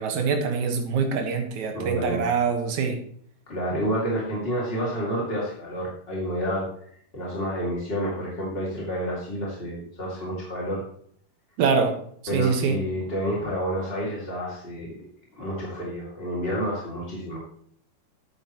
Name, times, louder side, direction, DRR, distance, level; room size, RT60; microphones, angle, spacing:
voice 1, 0.0-3.0 11.6-12.0 12.3-12.8, right 5 dB, 60° right, 4 dB, 2.2 m, -24 dB
voice 2, 1.7-2.2 3.5-6.7 7.1-10.8 12.3-14.9 15.4-17.4, equal, 25° left, -5 dB, 1.4 m, -29 dB
13.0 x 8.8 x 3.0 m, 0.62 s
omnidirectional pair, 4.9 m